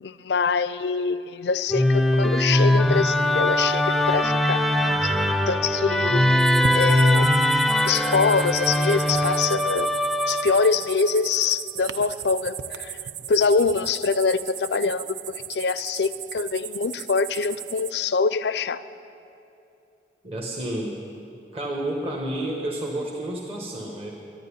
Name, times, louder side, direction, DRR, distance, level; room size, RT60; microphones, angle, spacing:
voice 1, 0.0-4.6 5.0-5.1 5.5-7.3 7.8-9.9 10.3-13.0 13.3-15.0 15.5-18.8, left 5 dB, 75° left, 14 dB, 0.5 m, -24 dB
Musical instrument, 1.7-10.9, left 1 dB, ahead, 0.4 m, -21 dB
sound 1, 6.4-17.9, right 9 dB, 75° right, 0.5 m, -36 dB
voice 2, 20.2-21.0 21.5-24.1, right 1 dB, 30° right, -1 dB, 1.2 m, -30 dB
12.0 x 10.5 x 9.9 m, 2.6 s
head